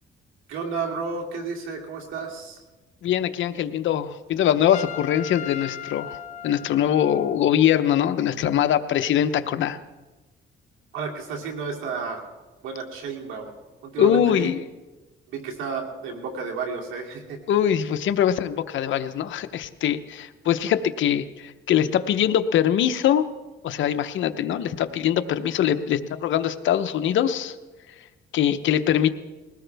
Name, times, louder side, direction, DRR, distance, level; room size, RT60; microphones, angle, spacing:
voice 1, 0.5-2.6 10.9-12.2 12.6-13.5 13.8-14.5 15.3-17.4, right 5 dB, 85° right, 0 dB, 2.7 m, -32 dB
voice 2, 3.0-9.8 14.0-14.6 17.5-23.3 23.6-27.6 28.3-29.1, left 10 dB, 75° left, 11 dB, 0.9 m, -22 dB
Trumpet, 4.7-7.4, left 9 dB, 40° left, 3.6 m, -37 dB
21.0 x 17.5 x 3.5 m, 1.2 s
cardioid pair, 90°, 20 cm